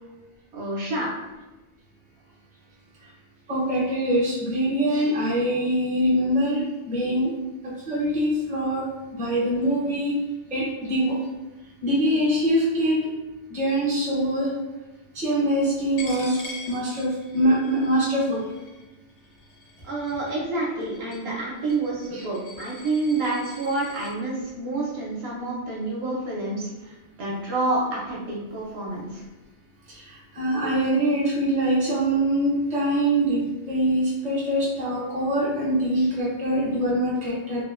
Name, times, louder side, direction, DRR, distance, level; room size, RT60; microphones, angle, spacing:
voice 1, 0.5-1.1 19.8-26.9 27.2-29.2, right 2 dB, 65° right, -4 dB, 0.8 m, -28 dB
voice 2, 3.5-7.3 7.6-8.8 9.1-10.1 10.5-11.2 11.8-13.1 13.5-14.5 15.1-16.4 16.7-18.5 22.1-22.2 30.4-37.6, right 1 dB, 10° right, -6 dB, 0.4 m, -23 dB
Coin (dropping), 16.0-24.1, left 3 dB, 70° left, 0.9 m, -43 dB
2.8 x 2.0 x 2.4 m, 1.1 s
omnidirectional pair, 1.2 m